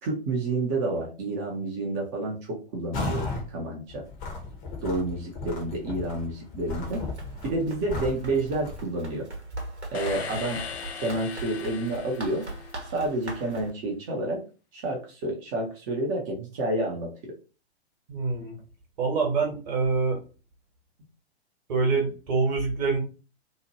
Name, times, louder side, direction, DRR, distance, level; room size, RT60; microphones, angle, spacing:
voice 1, 0.0-4.0 4.8-7.0 7.4-9.3 9.9-10.6 11.0-12.4 12.9-14.4 14.7-17.3, right 2 dB, 20° right, -1 dB, 0.5 m, -29 dB
sound 1, 2.9-3.5 3.9-8.8, left 3 dB, 20° left, 0.6 m, -35 dB
Run, 6.8-13.7, right 2 dB, 75° right, 1.0 m, -40 dB
sound 2, 9.9-13.1, left 7 dB, 70° left, 0.5 m, -38 dB
voice 2, 18.1-18.6 19.0-20.2 21.7-23.0, right 4 dB, 40° right, 2 dB, 1.1 m, -25 dB
2.8 x 2.1 x 2.7 m, 0.34 s
figure-of-eight pair, 115°, 33 cm